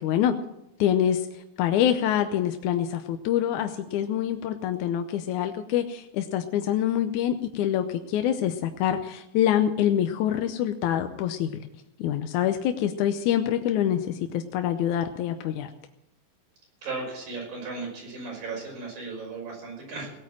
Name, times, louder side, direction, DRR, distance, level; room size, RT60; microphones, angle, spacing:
voice 1, 0.0-0.4 0.8-1.2 1.6-11.7 12.0-15.7, left 10 dB, 75° left, 7 dB, 2.0 m, -25 dB
voice 2, 16.8-20.1, right 3 dB, 80° right, 0 dB, 7.4 m, -36 dB
18.5 x 8.9 x 7.5 m, 0.85 s
omnidirectional pair, 4.0 m